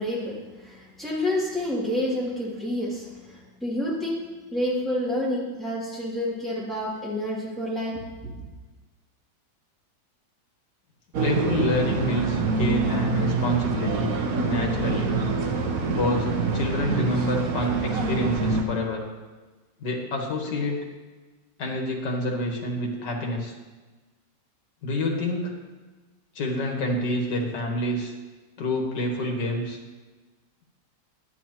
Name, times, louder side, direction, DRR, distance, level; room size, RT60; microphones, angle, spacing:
voice 1, 0.0-4.2 4.5-8.3, left 1 dB, ahead, -7 dB, 2.5 m, -29 dB
sound 1, 11.1-18.6, right 3 dB, 60° right, 1.3 m, -26 dB
voice 2, 11.2-14.1 14.5-15.2 15.8-19.0 19.8-20.8 21.6-23.5 24.8-25.5 26.4-28.1 28.6-29.8, left 1 dB, 75° left, 0 dB, 2.1 m, -28 dB
11.0 x 9.3 x 3.0 m, 1.3 s
omnidirectional pair, 1.9 m